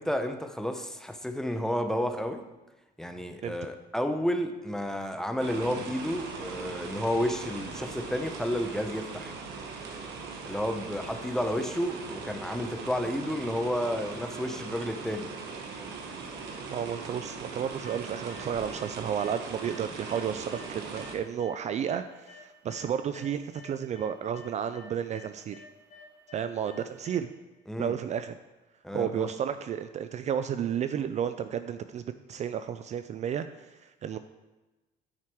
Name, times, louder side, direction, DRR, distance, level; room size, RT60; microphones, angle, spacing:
voice 1, 0.0-2.4 3.0-9.3 10.5-15.3 27.7-27.9 28.8-29.3, equal, 5° left, 6 dB, 0.6 m, -31 dB
sound 1, 5.4-21.2, right 4 dB, 80° right, 1.2 m, -40 dB
voice 2, 16.7-25.6 26.3-27.3 27.8-28.3 28.9-34.2, right 8 dB, 45° right, 10 dB, 0.4 m, -32 dB
sound 2, 17.8-18.5 18.7-19.3 19.6-22.9 23.1-27.1, left 3 dB, 50° left, 2.2 m, -51 dB
9.5 x 4.7 x 4.5 m, 1.1 s
cardioid pair, 110°, 17 cm